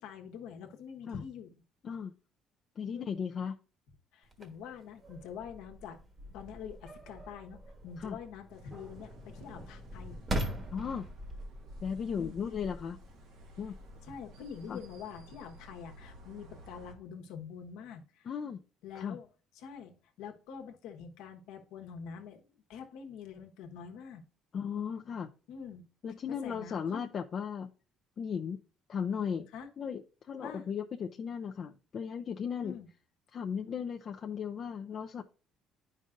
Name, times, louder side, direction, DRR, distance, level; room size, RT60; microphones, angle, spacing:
voice 1, 0.0-1.6 2.9-3.1 4.1-6.0 6.3-10.2 12.2-12.4 14.0-18.3 18.8-19.3 19.5-22.4 22.7-24.2 25.5-25.8 26.3-27.1 29.5-29.7 30.4-30.7 32.6-32.9, left 7 dB, 90° left, 1.1 m, -46 dB
voice 2, 2.8-3.6 8.0-8.2 10.7-11.1 11.8-13.0 13.6-13.8 14.7-14.8 18.3-18.6 18.9-19.2 24.5-25.3 26.0-27.7 28.2-28.6 28.9-29.5 29.8-32.7 33.3-35.2, left 7 dB, 45° left, 0.4 m, -36 dB
sound 1, 4.2-15.2, right 1 dB, 25° right, 1.3 m, -43 dB
sound 2, 8.5-17.0, right 1 dB, 85° right, 1.5 m, -55 dB
9.8 x 5.3 x 2.5 m
cardioid pair, 120°, 0 cm